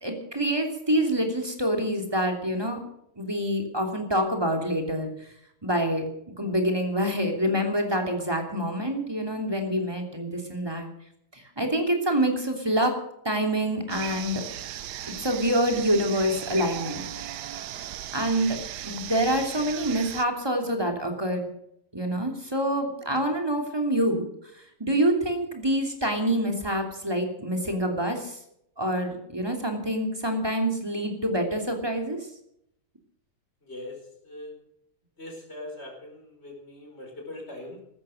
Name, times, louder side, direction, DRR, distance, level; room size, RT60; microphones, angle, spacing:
voice 1, 0.0-2.8 3.2-5.1 5.6-6.1 6.4-10.9 11.3-13.0 13.2-14.4 15.2-17.0 18.1-18.6 18.8-21.5 21.9-24.3 24.5-28.4 28.8-32.2, right 1 dB, 15° right, 3 dB, 3.0 m, -26 dB
sound 1, 13.9-20.2, right 11 dB, 80° right, 1.3 m, -37 dB
voice 2, 33.6-34.6 35.2-37.8, left 1 dB, 40° left, 1 dB, 5.1 m, -41 dB
16.0 x 13.0 x 6.5 m, 0.74 s
omnidirectional pair, 1.7 m